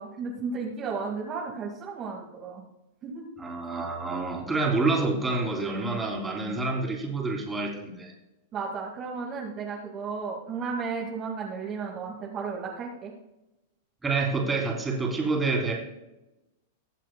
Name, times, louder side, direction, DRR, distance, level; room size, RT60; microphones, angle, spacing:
voice 1, 0.0-2.6 3.0-3.3 8.5-13.1, right 5 dB, 35° right, -2 dB, 2.0 m, -34 dB
voice 2, 3.4-8.1 14.0-15.7, right 3 dB, 15° right, -1 dB, 3.2 m, -28 dB
21.5 x 7.4 x 2.3 m, 0.95 s
hypercardioid pair, 110°, 0 cm